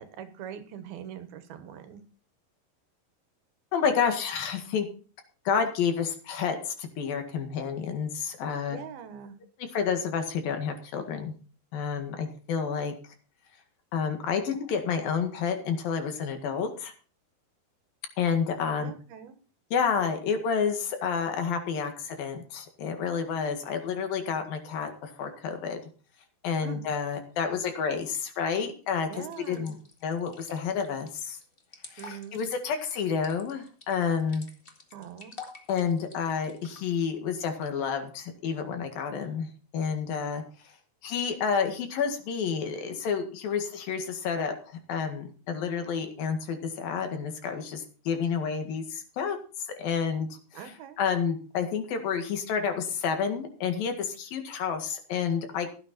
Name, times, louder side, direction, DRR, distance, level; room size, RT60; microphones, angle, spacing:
voice 1, 0.0-2.0 8.7-9.4 18.8-19.4 26.6-26.8 29.1-29.7 32.0-32.4 34.9-35.4 50.5-51.0, right 8 dB, 80° right, 10 dB, 3.1 m, -42 dB
voice 2, 3.7-4.9 5.5-8.8 9.7-11.3 11.7-13.0 13.9-16.9 18.2-18.9 19.7-25.8 26.4-29.1 29.5-29.8 30.0-31.4 31.9-34.5 35.7-40.4 41.0-49.4 49.8-50.3 50.5-50.6 51.0-55.7, left 6 dB, 70° left, 6 dB, 3.6 m, -29 dB
sound 1, 29.1-36.8, left 3 dB, 40° left, 0.7 m, -49 dB
15.5 x 9.7 x 4.2 m, 0.38 s
omnidirectional pair, 4.4 m